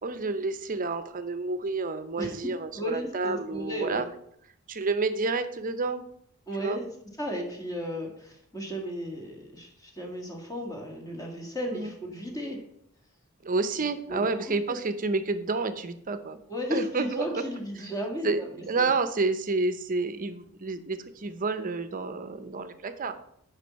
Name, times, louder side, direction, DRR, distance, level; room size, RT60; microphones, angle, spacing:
voice 1, 0.0-4.1 4.7-6.0 6.6-6.8 11.7-11.9 13.4-16.4 16.7-17.4 18.2-23.2, right 3 dB, 40° right, 11 dB, 0.6 m, -29 dB
voice 2, 2.7-4.0 6.5-6.9 7.2-12.6 13.8-14.8 16.5-18.5 18.8-18.9, equal, 15° left, 1 dB, 1.7 m, -35 dB
10.0 x 5.3 x 4.2 m, 0.71 s
head